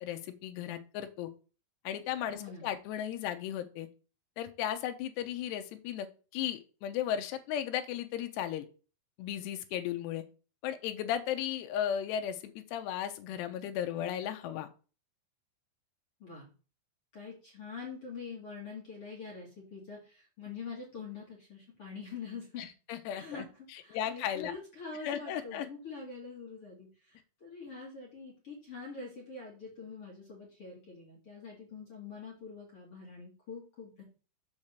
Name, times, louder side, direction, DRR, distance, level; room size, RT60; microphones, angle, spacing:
voice 1, 0.0-1.3 1.8-3.9 4.4-6.1 6.3-8.7 9.2-10.2 10.6-14.7 22.6-23.5 23.9-24.5 25.0-25.7, left 10 dB, 80° left, 8 dB, 2.6 m, -35 dB
voice 2, 2.3-2.7 16.2-16.5 17.1-22.7 23.1-34.0, left 5 dB, 40° left, -4 dB, 2.1 m, -45 dB
7.3 x 4.2 x 6.6 m, 0.36 s
omnidirectional pair, 5.5 m